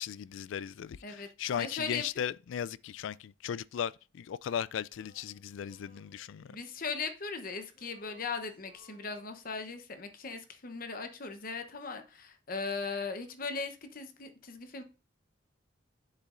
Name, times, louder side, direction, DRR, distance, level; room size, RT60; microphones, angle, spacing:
voice 1, 0.0-6.6, left 9 dB, 80° left, 0.3 m, -37 dB
voice 2, 1.6-2.1 6.5-14.8, left 4 dB, 45° left, 0.9 m, -38 dB
Male singing, 4.9-7.4 7.6-9.8, left 1 dB, 65° left, 2.6 m, -63 dB
7.6 x 7.2 x 2.5 m
head